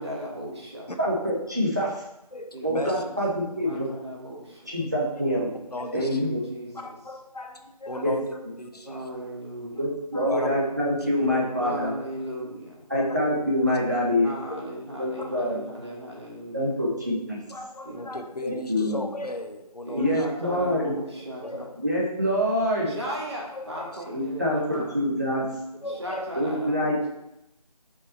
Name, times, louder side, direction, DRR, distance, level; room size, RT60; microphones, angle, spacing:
voice 1, 0.0-0.9 2.5-3.2 3.6-4.7 6.0-6.7 8.9-9.8 11.5-12.9 14.2-16.7 17.8-18.0 19.8-21.7 22.9-24.8 25.9-27.0, right 1 dB, 45° right, -3 dB, 1.9 m, -36 dB
voice 2, 1.0-1.9 2.6-3.3 3.6-3.9 4.7-5.5 5.9-6.4 8.0-8.1 9.8-11.9 12.9-14.3 15.0-15.6 16.5-17.4 18.4-19.1 20.0-20.9 21.8-22.9 24.1-25.5 26.4-27.1, equal, 25° right, -5 dB, 0.8 m, -25 dB
voice 3, 2.3-3.0 5.7-6.2 6.7-8.2 8.6-9.1 10.1-10.5 11.3-11.4 11.8-11.9 12.9-13.2 13.7-13.8 14.5-14.6 15.2-15.3 17.5-20.3 21.4-21.6 23.5-24.0 25.8-26.3, left 2 dB, 75° left, 6 dB, 1.0 m, -36 dB
5.6 x 4.8 x 4.0 m, 0.88 s
figure-of-eight pair, 170°, 20 cm